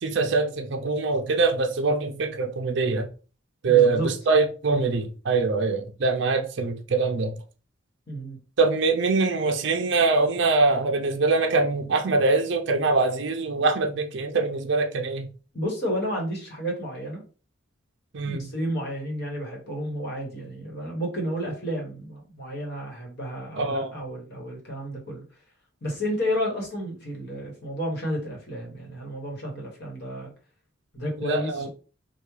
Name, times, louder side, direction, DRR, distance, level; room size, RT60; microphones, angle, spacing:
voice 1, 0.0-3.1 3.6-7.4 8.6-15.3 18.1-18.5 23.6-23.9 31.2-31.7, right 3 dB, 55° right, 0.5 m, -23 dB
voice 2, 3.6-4.1 8.1-8.4 15.5-17.2 18.2-25.2 25.8-30.3 30.9-31.7, equal, 50° left, 1.2 m, -31 dB
3.5 x 2.3 x 3.1 m
head